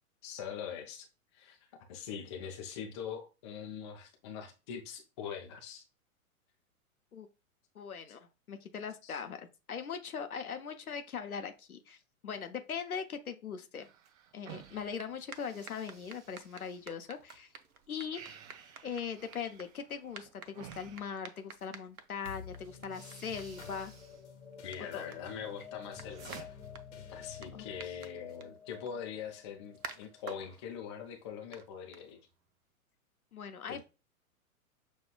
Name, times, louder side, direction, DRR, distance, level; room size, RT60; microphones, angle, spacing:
voice 1, 0.2-1.1 1.3-1.6 1.9-5.8 9.0-9.2 24.6-26.5 27.1-32.2 33.7-33.8, left 7 dB, 20° left, 0.4 m, -43 dB
voice 2, 7.7-13.9 14.3-17.5 17.9-18.2 18.8-23.9 24.9-25.1 27.5-27.9 33.3-33.8, left 6 dB, 80° left, 0.7 m, -40 dB
sound 1, 13.7-17.4 17.7-21.8 22.4-22.5 22.8-24.2 24.5-25.1 25.5-26.4, right 9 dB, 25° right, 0.7 m, -54 dB
sound 2, 14.7-32.5, right 5 dB, 85° right, 0.6 m, -53 dB
sound 3, 22.2-31.0, left 7 dB, 55° left, 1.0 m, -50 dB
6.2 x 2.3 x 2.2 m
figure-of-eight pair, 110°, 43 cm